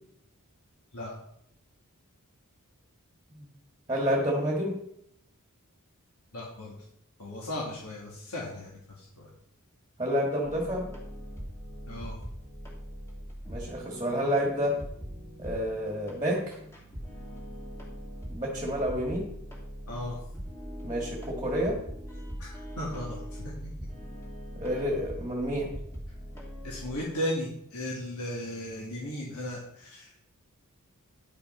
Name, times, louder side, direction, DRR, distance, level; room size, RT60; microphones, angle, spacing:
voice 1, 3.9-4.8 10.0-10.9 13.5-14.7 15.4-16.6 18.3-19.2 20.8-21.8 24.6-25.7, equal, 20° right, -1 dB, 1.8 m, -29 dB
voice 2, 6.3-6.7 7.2-9.3 11.9-12.2 19.9-20.2 22.4-23.5 26.6-30.2, left 1 dB, 75° left, -4 dB, 2.4 m, -36 dB
sound 1, 10.4-27.0, equal, 10° left, 3.1 m, -41 dB
10.0 x 5.9 x 5.9 m, 0.72 s
head